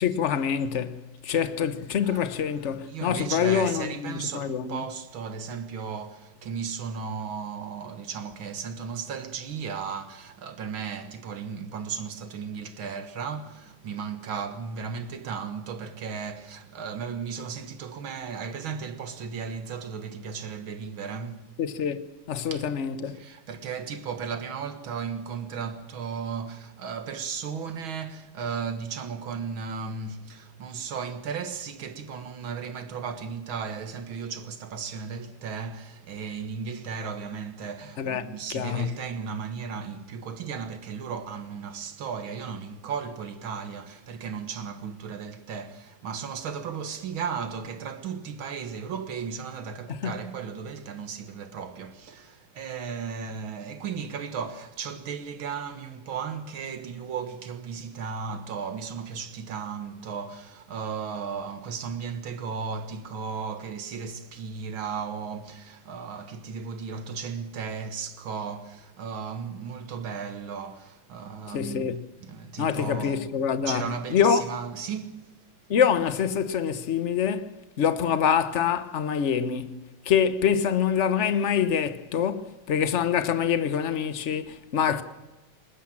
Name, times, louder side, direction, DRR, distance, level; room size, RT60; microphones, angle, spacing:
voice 1, 0.0-4.8 21.6-23.2 38.0-38.2 38.5-38.9 50.0-50.1 71.5-72.0 72.6-74.4 75.7-85.0, left 8 dB, 45° left, 0.9 m, -25 dB
voice 2, 2.9-21.5 22.5-22.7 23.1-71.9 72.2-73.3 73.7-75.2 84.9-85.0, right 6 dB, 70° right, 2.2 m, -35 dB
21.0 x 19.5 x 7.4 m
omnidirectional pair, 2.3 m